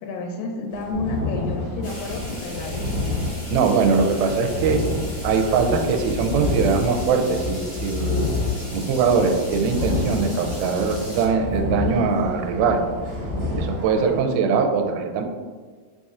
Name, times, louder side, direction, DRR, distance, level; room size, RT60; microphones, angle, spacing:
voice 1, 0.0-3.0 13.8-14.3, left 3 dB, 80° left, 1 dB, 2.1 m, -31 dB
sound 1, 0.7-14.2, equal, 65° right, 2.0 m, -38 dB
sound 2, 0.9-13.7, left 3 dB, 50° right, 1.8 m, -29 dB
sound 3, 1.8-11.3, equal, 50° left, 1.4 m, -39 dB
voice 2, 3.5-4.8 5.2-8.5 8.7-12.8 13.6-15.2, right 5 dB, 85° right, 4 dB, 2.3 m, -21 dB
5.0 x 4.1 x 2.4 m, 1.5 s
omnidirectional pair, 4.4 m